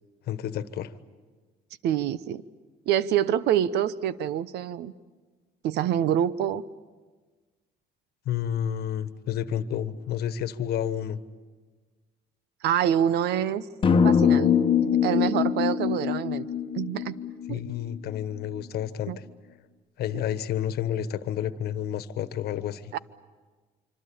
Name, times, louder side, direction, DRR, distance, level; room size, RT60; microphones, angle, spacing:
voice 1, 0.3-0.9 8.2-11.2 17.5-19.1 20.0-22.9, left 10 dB, 70° left, 13 dB, 1.3 m, -30 dB
voice 2, 1.8-2.4 2.9-4.9 5.6-6.6 12.6-13.6 14.0-14.5 14.8-16.5 16.7-17.2 17.5-17.6 19.1-19.2 20.1-20.2 22.9-23.0, right 10 dB, 80° right, 17 dB, 0.9 m, -26 dB
sound 1, 13.8-18.0, left 7 dB, 30° left, 1.1 m, -23 dB
26.0 x 25.5 x 8.6 m, 1.4 s
cardioid pair, 110°, 17 cm